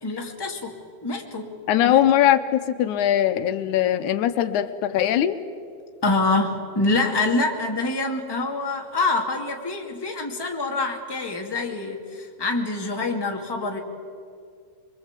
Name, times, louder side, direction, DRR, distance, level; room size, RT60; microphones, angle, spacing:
voice 1, 0.0-1.5 1.8-2.0 6.0-13.8, left 2 dB, 10° left, 1 dB, 1.9 m, -26 dB
voice 2, 1.7-5.4, left 11 dB, 85° left, 10 dB, 2.4 m, -21 dB
24.5 x 23.0 x 8.2 m, 2.2 s
omnidirectional pair, 3.4 m